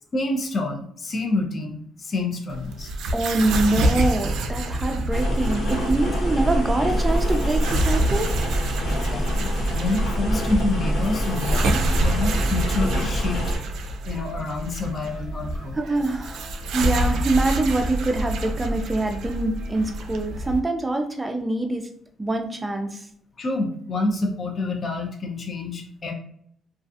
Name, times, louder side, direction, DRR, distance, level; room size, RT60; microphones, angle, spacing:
voice 1, 0.1-2.9 8.8-13.4 14.1-15.8 23.4-26.1, left 2 dB, 40° left, 2 dB, 0.5 m, -28 dB
sound 1, 2.5-20.6, right 1 dB, 85° right, 0.3 m, -28 dB
voice 2, 3.1-8.3 15.8-21.9 22.2-23.0, right 2 dB, 15° right, 5 dB, 0.4 m, -25 dB
sound 2, 5.1-13.6, equal, 75° left, 1.3 m, -24 dB
2.3 x 2.3 x 2.5 m, 0.64 s
cardioid pair, 100°, 0 cm